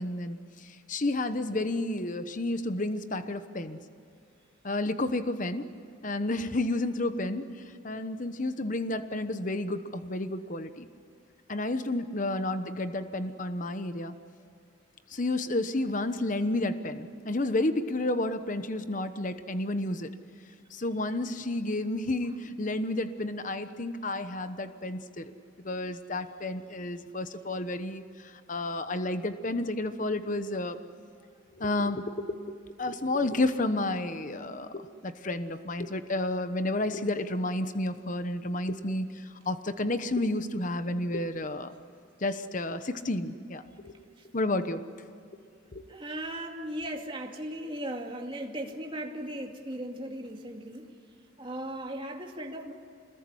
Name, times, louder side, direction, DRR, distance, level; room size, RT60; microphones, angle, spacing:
voice 1, 0.0-3.8 4.6-5.7 6.0-7.5 7.8-10.9 11.5-14.2 15.1-20.1 20.7-25.3 25.6-30.8 31.6-32.0 32.8-39.1 39.5-41.7 42.2-43.9 44.3-44.8 45.7-45.8, left 2 dB, 40° left, 10 dB, 1.0 m, -31 dB
voice 2, 45.9-50.9 51.4-52.7, right 1 dB, 25° right, 2 dB, 2.4 m, -37 dB
27.0 x 20.5 x 9.9 m, 2.4 s
head